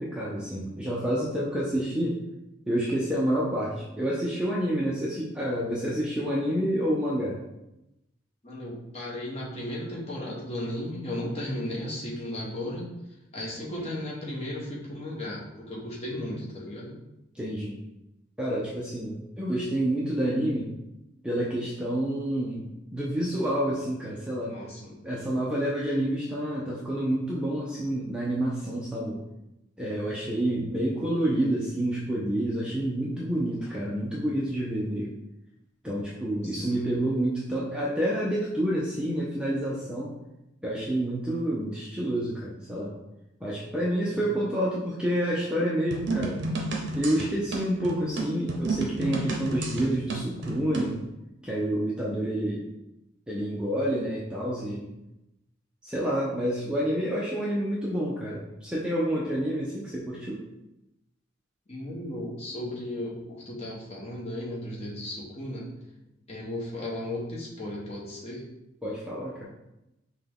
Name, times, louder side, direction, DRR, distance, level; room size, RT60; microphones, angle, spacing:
voice 1, 0.0-2.2 2.7-7.4 17.3-17.8 18.4-20.7 21.2-22.7 22.9-24.5 25.0-29.2 29.8-35.1 35.8-40.1 40.6-42.9 43.4-46.4 47.0-51.0 51.4-52.6 53.3-54.9 55.8-60.4 68.8-69.5, right 1 dB, 5° right, -5 dB, 0.5 m, -28 dB
voice 2, 8.4-12.9 13.3-16.9 24.4-25.0 36.4-36.9 44.0-44.3 61.7-65.7 66.3-68.4, left 1 dB, 30° left, -5 dB, 1.1 m, -35 dB
sound 1, 45.9-51.0, right 2 dB, 55° right, 0.7 m, -31 dB
5.7 x 2.3 x 3.5 m, 0.91 s
head